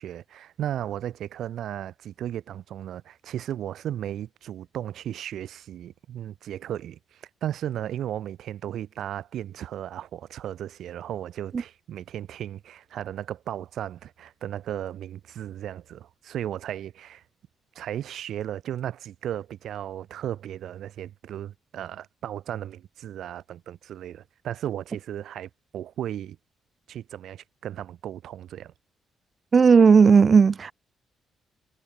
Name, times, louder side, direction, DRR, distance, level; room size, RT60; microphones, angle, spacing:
voice 1, 0.0-17.2 17.7-26.4 26.9-28.7, right 11 dB, 70° right, 6.1 m, -35 dB
voice 2, 29.5-30.7, right 5 dB, 40° right, 1.0 m, -15 dB
cardioid pair, 90°, 0 cm